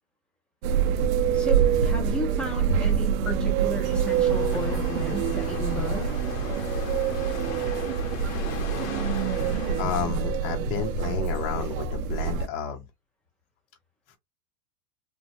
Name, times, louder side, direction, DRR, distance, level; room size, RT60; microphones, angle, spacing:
sound 1, 0.6-12.5, right 6 dB, 85° right, 0.6 m, -26 dB
voice 1, 1.3-6.1, right 1 dB, ahead, 0.6 m, -33 dB
sound 2, 3.8-9.8, left 7 dB, 75° left, 1.0 m, -39 dB
voice 2, 9.8-12.8 14.1-14.2, left 7 dB, 45° left, 0.7 m, -32 dB
3.1 x 2.2 x 2.6 m
supercardioid pair, 150°, 40 cm